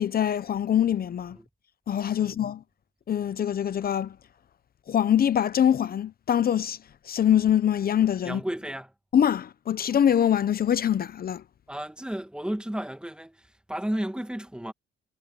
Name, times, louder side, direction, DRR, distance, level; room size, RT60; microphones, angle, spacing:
voice 1, 0.0-1.4 1.9-2.6 3.1-4.2 4.9-6.8 7.1-8.4 9.1-11.4, left 9 dB, 50° left, 0.9 m, -24 dB
voice 2, 8.2-8.9 11.7-14.7, right 1 dB, 5° right, 2.1 m, -33 dB
cardioid pair, 90°, 20 cm